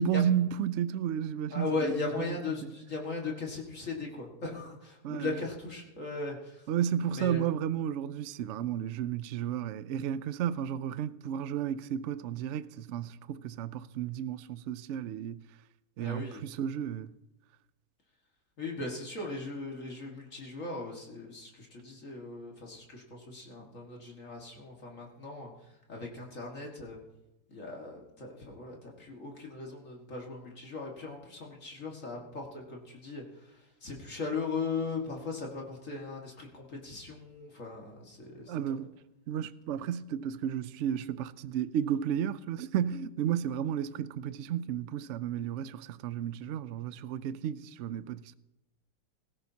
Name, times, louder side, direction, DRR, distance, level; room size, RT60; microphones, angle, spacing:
voice 1, 0.0-2.7 5.0-5.4 6.7-15.4 16.0-17.1 38.5-38.9 39.3-48.4, right 9 dB, 70° right, 0.7 m, -33 dB
voice 2, 1.5-6.4 7.0-7.4 16.0-16.5 18.6-25.5 25.9-27.0 27.5-33.2 33.8-38.5, left 3 dB, 50° left, 2.2 m, -38 dB
18.0 x 16.0 x 2.8 m
omnidirectional pair, 1.7 m